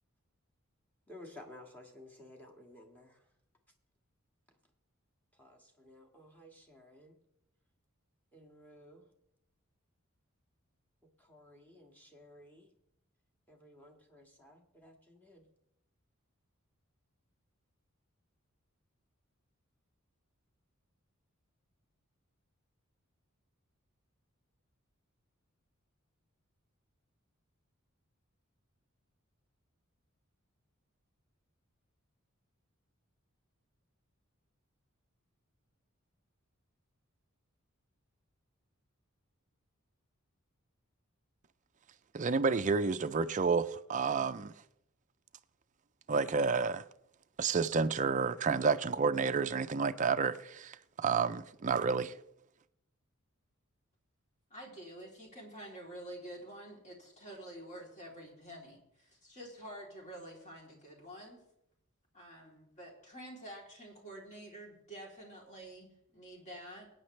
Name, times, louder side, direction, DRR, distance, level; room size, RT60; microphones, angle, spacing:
voice 1, 1.1-3.2 5.4-7.1 8.3-9.1 11.2-12.7 13.5-15.4, left 1 dB, 10° left, 1.8 m, -55 dB
voice 2, 42.1-44.5 46.1-46.8 47.4-52.1, right 5 dB, 35° right, 0.5 m, -30 dB
voice 3, 54.5-61.4 62.1-66.9, right 1 dB, 35° left, 3.2 m, -48 dB
20.5 x 9.3 x 3.3 m
head